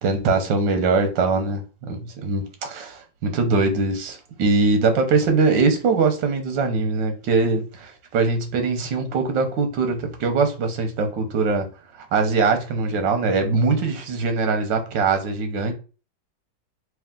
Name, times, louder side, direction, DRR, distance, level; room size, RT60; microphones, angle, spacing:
voice 1, 0.0-11.7 12.1-15.7, right 4 dB, 85° right, 1.5 m, -22 dB
3.7 x 3.0 x 3.6 m
omnidirectional pair, 1.9 m